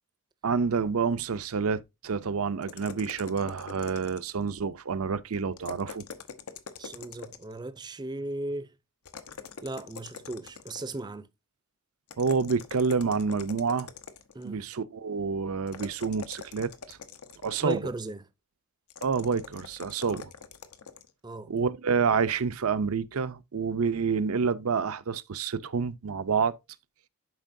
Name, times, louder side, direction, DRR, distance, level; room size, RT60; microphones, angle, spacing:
voice 1, 0.4-6.0 12.2-13.9 14.4-17.0 17.4-17.8 19.0-20.3 21.5-26.6, right 5 dB, 80° right, 0.6 m, -28 dB
sound 1, 2.6-4.5 5.5-7.6 9.1-11.0 12.1-14.5 15.7-17.9 18.9-21.1, left 6 dB, 85° left, 0.9 m, -44 dB
voice 2, 6.8-8.7 9.6-11.3 14.3-14.7 17.6-18.2 20.1-20.2 21.2-21.5, right 2 dB, 20° right, 0.5 m, -36 dB
11.0 x 4.5 x 2.6 m
head